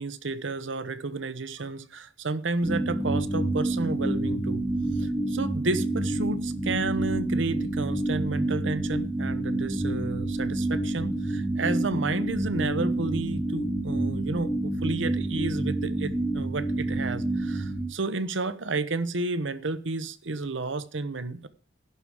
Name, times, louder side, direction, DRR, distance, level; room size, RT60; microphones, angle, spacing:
voice 1, 0.0-4.6 5.0-21.5, right 3 dB, 85° right, 0.9 m, -31 dB
sound 1, 2.6-17.9, right 1 dB, ahead, 2.2 m, -28 dB
11.0 x 4.9 x 7.5 m
head